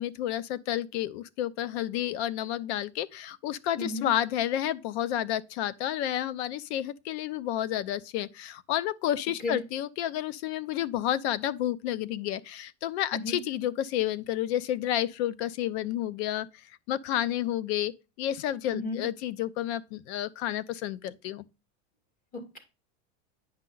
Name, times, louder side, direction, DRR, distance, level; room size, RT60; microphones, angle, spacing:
voice 1, 0.0-17.9 18.2-21.4, left 12 dB, 70° left, 0.7 m, -30 dB
voice 2, 3.8-4.1 9.4-9.6 13.1-13.4 18.7-19.0 22.3-22.6, left 3 dB, 25° left, 2.2 m, -33 dB
9.6 x 5.5 x 3.9 m
supercardioid pair, 160°, 34 cm